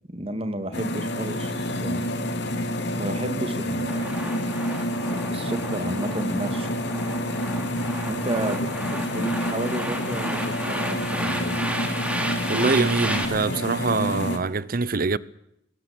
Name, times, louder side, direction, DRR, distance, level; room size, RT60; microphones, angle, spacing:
voice 1, 0.1-2.1 3.0-4.2 5.1-6.7 8.1-11.6, right 1 dB, 35° right, 2.5 m, -32 dB
sound 1, 0.7-14.4, left 1 dB, 65° left, 2.9 m, -28 dB
sound 2, 3.9-13.3, right 1 dB, 5° right, 3.1 m, -33 dB
voice 2, 12.5-15.2, right 4 dB, 50° right, 0.7 m, -24 dB
20.0 x 17.5 x 8.9 m
head